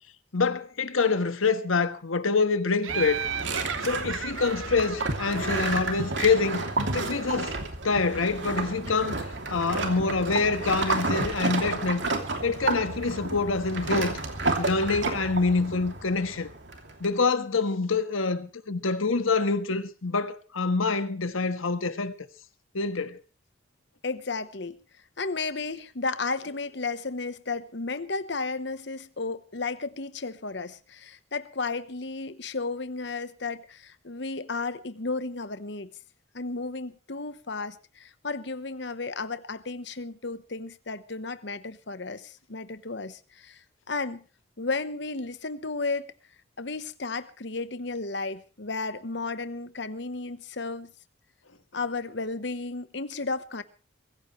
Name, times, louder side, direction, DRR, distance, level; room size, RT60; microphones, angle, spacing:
voice 1, 0.3-3.2 3.8-6.6 6.9-7.5 7.8-9.2 9.5-12.0 12.4-14.2 14.6-16.5 17.0-22.1 22.7-23.2, left 4 dB, 90° left, 1.5 m, -26 dB
Laughter, 2.8-6.5, right 7 dB, 80° right, 1.0 m, -35 dB
Footsteps Walking Boot Gravel to Pontoon, 2.9-17.1, right 3 dB, 60° right, 2.8 m, -31 dB
voice 2, 24.0-24.8 25.2-35.9 36.3-44.2 44.6-46.1 46.6-50.9 51.7-53.6, left 3 dB, 60° left, 1.1 m, -33 dB
23.5 x 15.0 x 3.2 m
head